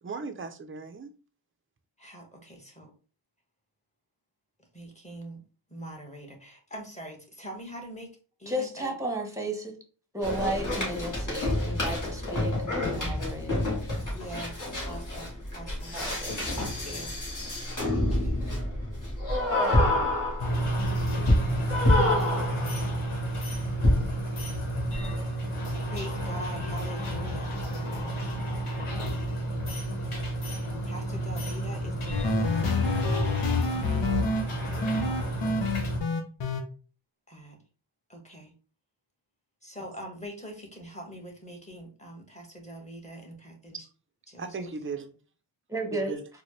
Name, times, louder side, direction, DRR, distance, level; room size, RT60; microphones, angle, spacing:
voice 1, 0.0-1.1 44.4-45.1 45.9-46.2, right 4 dB, 25° right, 0.6 m, -37 dB
voice 2, 2.0-2.9 4.7-5.4 5.7-8.1 8.4-8.9 14.1-16.0 16.6-17.1 17.9-18.5 22.5-23.6 25.8-28.3 30.8-35.0 35.4-35.7 37.3-37.6 38.1-38.5 39.6-43.8 44.3-44.7, equal, 15° left, 1.4 m, -44 dB
voice 3, 8.5-9.8 10.1-13.7 15.9-16.5 45.7-46.1, right 1 dB, 5° right, 1.1 m, -33 dB
sound 1, 10.2-23.0 23.8-24.3, left 1 dB, 40° left, 1.7 m, -28 dB
sound 2, 20.4-36.0, right 1 dB, 85° left, 1.1 m, -31 dB
sound 3, 32.1-34.4 34.8-36.6, left 3 dB, 60° left, 0.8 m, -27 dB
4.2 x 2.2 x 3.2 m
cardioid pair, 50°, 49 cm